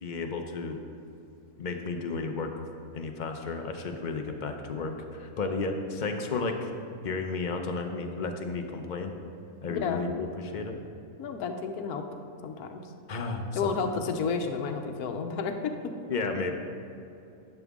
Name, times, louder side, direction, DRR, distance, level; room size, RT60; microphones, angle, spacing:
voice 1, 0.0-0.8 1.6-2.7 2.9-6.7 7.0-9.1 9.6-10.8 13.1-13.7 16.1-16.5, left 3 dB, 45° left, 4 dB, 0.6 m, -33 dB
voice 2, 9.7-10.0 11.2-12.0 12.4-12.9 13.6-15.5, left 5 dB, 80° left, 5 dB, 1.2 m, -31 dB
11.0 x 8.1 x 3.6 m, 2.7 s
omnidirectional pair, 1.6 m